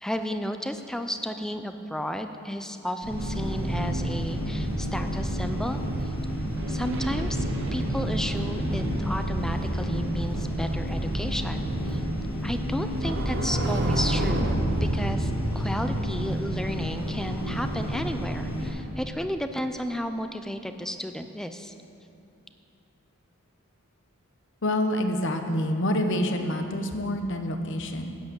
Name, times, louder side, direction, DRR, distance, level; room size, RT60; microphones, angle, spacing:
voice 1, 0.0-6.1 6.7-7.5 7.7-12.0 12.4-14.6 14.8-21.7, equal, ahead, 7 dB, 0.5 m, -33 dB
sound 1, 3.0-18.7, equal, 85° left, 3.3 m, -29 dB
sound 2, 6.6-9.8 12.8-14.6, right 1 dB, 55° right, 1.0 m, -33 dB
voice 2, 24.6-28.2, left 1 dB, 55° left, 6 dB, 1.0 m, -27 dB
10.5 x 7.9 x 8.4 m, 2.6 s
head